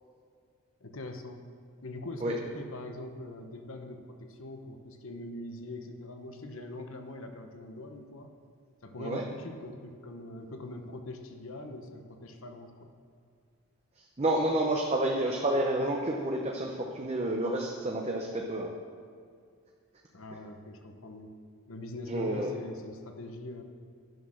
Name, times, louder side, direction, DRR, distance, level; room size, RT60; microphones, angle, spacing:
voice 1, 0.8-1.4 1.8-8.4 8.8-12.9 20.1-21.3 21.7-23.6, left 1 dB, 60° left, 5 dB, 0.9 m, -42 dB
voice 2, 14.0-18.7 22.1-22.5, right 1 dB, 30° right, 0 dB, 0.7 m, -29 dB
11.0 x 6.5 x 6.3 m, 2.2 s
head